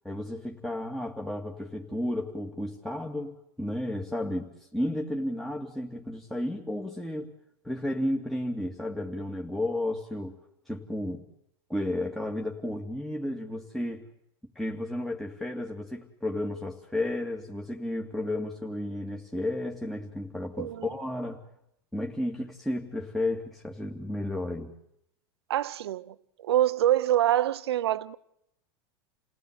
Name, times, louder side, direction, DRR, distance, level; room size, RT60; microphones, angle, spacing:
voice 1, 0.0-7.3 7.6-10.4 10.7-11.2 11.7-14.0 14.6-21.4 21.9-24.7, left 1 dB, ahead, 2.4 m, -33 dB
voice 2, 20.6-20.9 25.5-26.1 26.4-28.1, right 12 dB, 85° right, 0.9 m, -25 dB
29.0 x 17.5 x 8.2 m
supercardioid pair, 115°, 13 cm